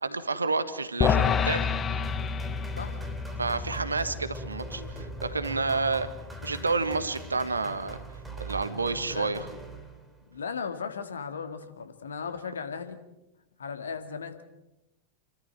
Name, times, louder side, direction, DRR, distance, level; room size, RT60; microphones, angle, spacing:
voice 1, 0.0-1.7 3.4-6.1 6.4-8.0 8.4-9.5, right 3 dB, 80° right, 12 dB, 1.4 m, -29 dB
sound 1, 1.0-7.4, left 6 dB, 25° left, 1.0 m, -30 dB
sound 2, 2.0-10.4, right 2 dB, 5° right, 3.1 m, -42 dB
voice 2, 2.8-3.1 5.3-5.4 8.7-9.5 10.3-13.0 13.6-14.4, left 6 dB, 70° left, 8 dB, 2.0 m, -37 dB
29.0 x 13.5 x 7.5 m, 0.93 s
figure-of-eight pair, 90°, 0 cm